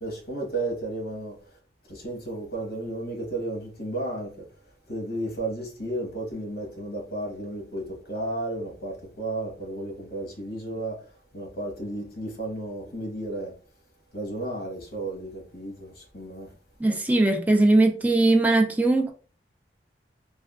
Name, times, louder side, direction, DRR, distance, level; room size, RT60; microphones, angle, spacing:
voice 1, 0.0-1.3 1.9-4.5 4.9-11.0 11.3-13.5 14.1-16.5, right 1 dB, 60° left, 1.2 m, -33 dB
voice 2, 16.8-19.1, right 2 dB, 10° right, 0.4 m, -20 dB
3.4 x 2.2 x 2.3 m
head